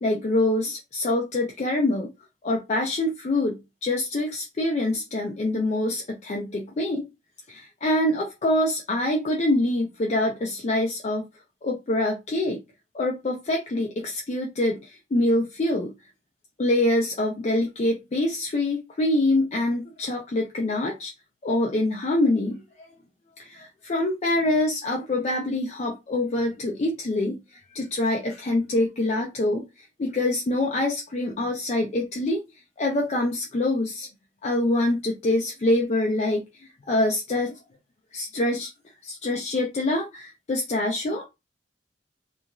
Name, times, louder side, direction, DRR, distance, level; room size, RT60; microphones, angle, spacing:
voice 1, 0.0-2.1 2.4-7.0 7.5-11.3 11.6-12.6 12.9-15.9 16.6-21.1 21.4-22.6 23.4-29.6 30.0-32.4 32.8-34.1 34.4-37.6 38.1-38.7 39.0-41.3, left 1 dB, 40° left, 0.4 m, -25 dB
2.9 x 2.4 x 2.3 m
head